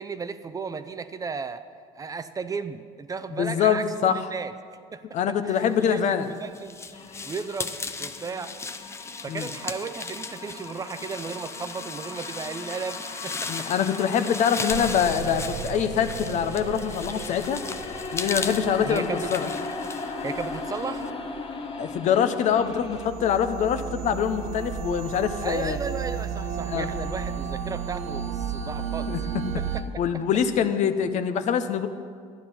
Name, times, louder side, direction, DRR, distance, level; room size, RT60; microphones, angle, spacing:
voice 1, 0.0-1.6 1.9-4.5 4.9-5.0 5.4-6.7 7.2-8.5 9.2-13.7 18.7-19.3 20.2-21.1 25.4-29.1 29.6-29.8, right 5 dB, 25° right, 12 dB, 0.5 m, -34 dB
voice 2, 3.3-4.2 5.1-6.3 9.3-9.5 13.5-17.6 18.1-19.5 21.8-25.8 26.7-26.9 29.1-29.2 30.0-31.9, left 8 dB, 55° left, 9 dB, 0.8 m, -24 dB
sound 1, 5.9-21.1, left 4 dB, 20° left, 0.6 m, -37 dB
sound 2, 6.9-23.1, left 4 dB, 35° left, 1.1 m, -38 dB
sound 3, 14.7-29.8, right 7 dB, 50° right, 1.2 m, -34 dB
12.0 x 10.0 x 5.5 m, 2.1 s
cardioid pair, 110°, 15 cm